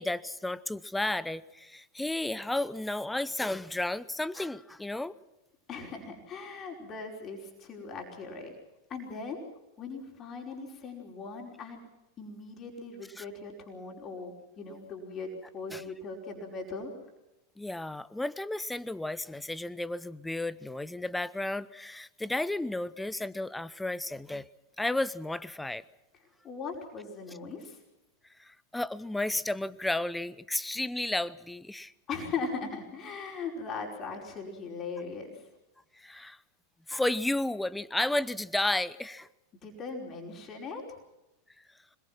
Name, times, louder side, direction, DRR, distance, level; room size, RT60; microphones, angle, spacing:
voice 1, 0.0-5.1 13.2-13.3 15.7-15.8 17.6-24.5 24.8-25.8 28.4-31.9 35.9-36.4 36.9-39.3, left 2 dB, 5° left, 19 dB, 0.8 m, -33 dB
voice 2, 5.7-8.5 8.9-9.4 9.8-11.8 12.2-16.9 26.4-27.8 32.1-35.5 39.6-41.0, left 4 dB, 30° left, 1 dB, 5.2 m, -39 dB
26.5 x 21.5 x 6.0 m, 0.97 s
figure-of-eight pair, 90°, 0 cm